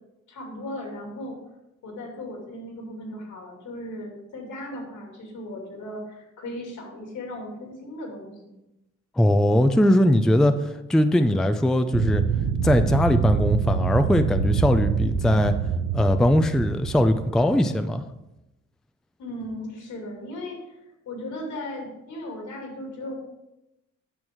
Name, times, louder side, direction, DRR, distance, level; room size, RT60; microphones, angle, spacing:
voice 1, 0.3-1.4 1.8-8.6 19.2-23.2, left 1 dB, 75° left, 0 dB, 2.7 m, -37 dB
voice 2, 9.2-12.2 12.6-15.6 15.9-18.0, left 1 dB, ahead, 9 dB, 0.4 m, -20 dB
sound 1, 11.9-17.7, right 7 dB, 80° right, 0.9 m, -25 dB
8.9 x 6.1 x 3.6 m, 0.90 s
cardioid pair, 90°, 30 cm